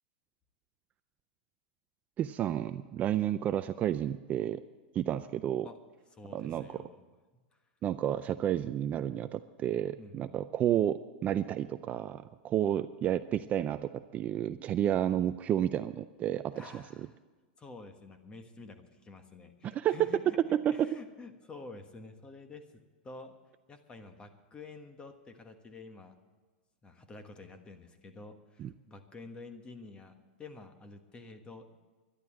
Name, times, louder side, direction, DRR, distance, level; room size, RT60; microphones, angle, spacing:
voice 1, 2.2-4.6 4.9-5.7 6.3-6.8 7.8-16.8 19.6-20.1 20.5-20.9 28.6-28.7, right 11 dB, 25° right, 11 dB, 0.4 m, -31 dB
voice 2, 6.1-7.0 7.5-7.6 9.9-10.3 16.5-17.2 17.6-20.4 20.7-22.6 23.0-23.4 23.7-26.2 26.8-31.8, left 3 dB, 15° left, 7 dB, 1.4 m, -49 dB
12.0 x 11.5 x 7.5 m, 1.3 s
hypercardioid pair, 130°, 6 cm